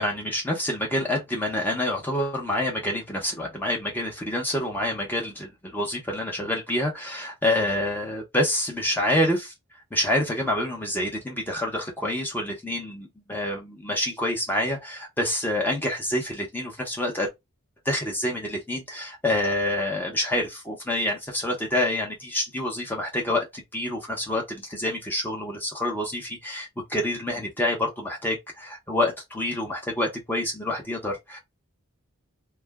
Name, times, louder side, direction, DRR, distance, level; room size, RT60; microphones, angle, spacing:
voice 1, 0.0-9.5 9.9-17.3 17.8-31.4, left 1 dB, 10° left, 0.9 m, -27 dB
2.5 x 2.2 x 3.5 m
head